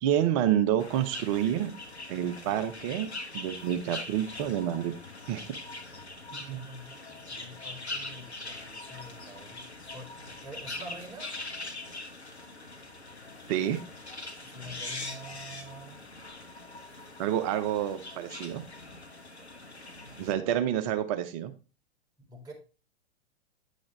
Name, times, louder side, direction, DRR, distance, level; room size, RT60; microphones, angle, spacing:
voice 1, 0.0-1.7 2.1-3.1 3.3-4.9 5.3-5.4 6.5-6.6 13.5-13.8 17.2-18.6 20.2-21.5, right 10 dB, 30° right, 9 dB, 0.7 m, -28 dB
sound 1, 0.8-20.3, left 2 dB, 85° left, 1.2 m, -42 dB
voice 2, 6.5-10.2 10.4-11.3 14.4-16.1 19.4-19.5 20.2-20.5 22.3-22.5, equal, 10° right, -3 dB, 3.9 m, -47 dB
9.8 x 6.3 x 3.2 m, 0.33 s
figure-of-eight pair, 105°, 32 cm